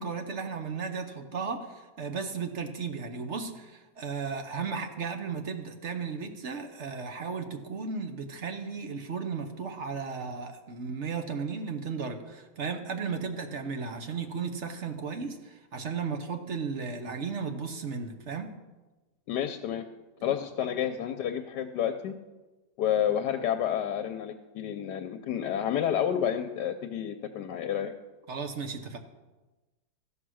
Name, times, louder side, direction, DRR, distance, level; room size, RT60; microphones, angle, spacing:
voice 1, 0.0-18.6 28.3-29.0, right 5 dB, 50° right, 6 dB, 0.9 m, -35 dB
voice 2, 19.3-19.8 20.2-22.1 22.8-27.9, left 9 dB, 75° left, 7 dB, 1.2 m, -30 dB
14.0 x 5.7 x 6.2 m, 1.2 s
omnidirectional pair, 1.9 m